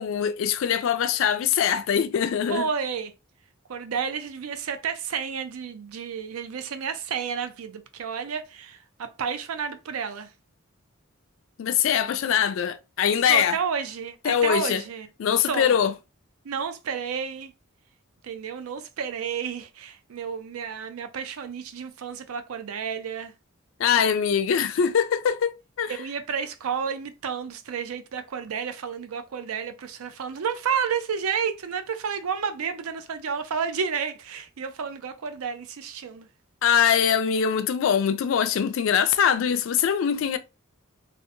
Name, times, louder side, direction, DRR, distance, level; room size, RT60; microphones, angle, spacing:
voice 1, 0.0-2.7 11.6-13.6 14.2-14.8 15.2-15.9 23.8-26.0 36.6-40.4, left 8 dB, 65° left, 0.3 m, -23 dB
voice 2, 2.5-3.1 3.7-10.3 13.3-15.1 15.5-15.7 16.4-17.5 18.2-23.3 25.9-36.3, right 6 dB, 85° right, 0.4 m, -31 dB
2.7 x 2.1 x 2.6 m
head